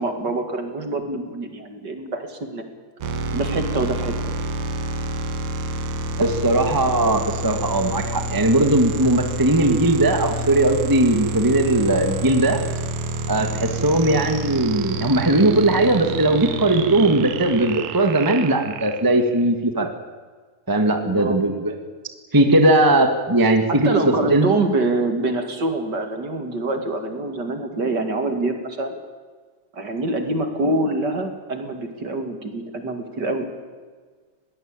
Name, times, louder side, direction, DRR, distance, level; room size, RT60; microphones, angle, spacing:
voice 1, 0.0-2.6 3.3-4.1 21.1-21.4 23.7-28.9 29.7-33.5, right 2 dB, 35° right, 6 dB, 2.7 m, -25 dB
sound 1, 3.0-19.5, right 2 dB, 70° right, 2.7 m, -28 dB
voice 2, 6.2-12.6 13.3-19.9 20.7-21.7 22.3-24.5, right 1 dB, 15° right, 6 dB, 0.8 m, -19 dB
21.5 x 18.0 x 8.9 m, 1.5 s
omnidirectional pair, 3.5 m